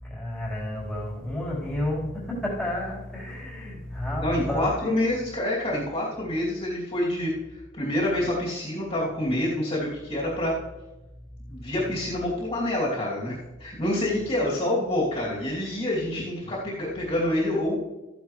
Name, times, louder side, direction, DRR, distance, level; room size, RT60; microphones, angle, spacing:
voice 1, 0.0-5.0, left 1 dB, ahead, -6 dB, 4.2 m, -31 dB
voice 2, 4.2-10.5 11.5-17.8, left 1 dB, 30° left, -6 dB, 2.9 m, -27 dB
14.5 x 10.0 x 3.3 m, 1.0 s
head